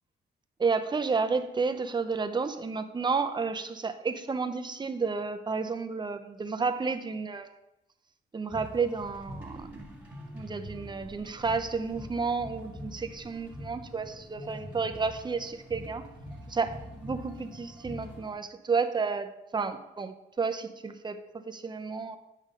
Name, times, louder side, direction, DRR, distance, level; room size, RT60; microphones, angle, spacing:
voice 1, 0.6-7.5 8.3-9.9 10.3-16.1 16.5-22.2, right 4 dB, 20° right, 8 dB, 0.6 m, -31 dB
sound 1, 8.5-18.3, equal, 5° right, 1.7 m, -44 dB
8.2 x 5.4 x 3.7 m, 0.91 s
cardioid pair, 90°, 20 cm